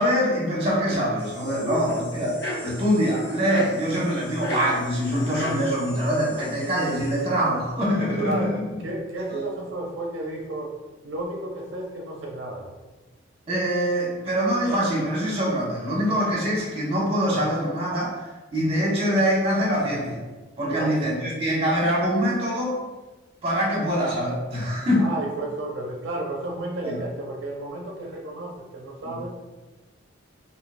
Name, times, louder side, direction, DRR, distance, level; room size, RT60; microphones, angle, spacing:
voice 1, 0.0-2.4 2.6-8.8 9.3-9.4 13.5-20.2 20.6-22.8 23.4-25.1 26.8-27.0 29.0-29.2, equal, 30° right, -5 dB, 1.3 m, -24 dB
sound 1, 1.2-7.2, left 1 dB, 65° left, 1.1 m, -36 dB
voice 2, 8.0-10.8 11.0-12.7 20.7-21.0 24.9-29.3, right 2 dB, 70° right, -1 dB, 0.6 m, -32 dB
5.0 x 2.7 x 2.5 m, 1.2 s
head